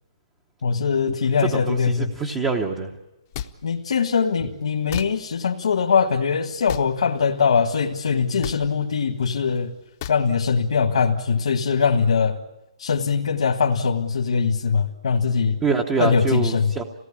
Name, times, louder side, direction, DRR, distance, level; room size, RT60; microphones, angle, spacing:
voice 1, 0.6-2.1 3.6-9.7 10.1-12.4 12.8-15.6 16.0-16.7, left 5 dB, 75° left, 3 dB, 1.7 m, -22 dB
voice 2, 1.5-2.9 15.6-16.8, right 4 dB, 10° right, 5 dB, 0.8 m, -25 dB
sound 1, 3.3-3.5 4.9-5.1 6.7-6.9 8.4-8.6 10.0-10.2, left 10 dB, 25° left, 0.8 m, -31 dB
26.5 x 18.0 x 8.7 m, 1.0 s
hypercardioid pair, 175°, 3 cm